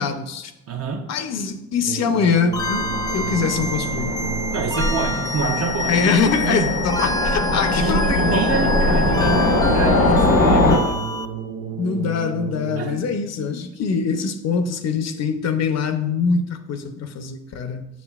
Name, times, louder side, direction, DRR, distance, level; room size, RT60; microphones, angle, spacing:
voice 1, 0.0-0.5 1.1-4.2 5.9-8.5 11.8-17.9, left 5 dB, 60° left, 8 dB, 0.6 m, -23 dB
voice 2, 0.7-1.1 4.5-6.9 7.5-11.0 12.8-13.0, right 5 dB, 50° right, 5 dB, 0.8 m, -27 dB
sound 1, 1.8-5.3 8.2-13.3, right 8 dB, 90° right, 0.5 m, -32 dB
Train, 2.5-10.8, left 2 dB, 90° left, 1.4 m, -21 dB
sound 2, 2.5-11.3, left 1 dB, 15° left, 0.4 m, -28 dB
7.1 x 6.2 x 2.4 m, 0.96 s
cardioid pair, 90°, 30 cm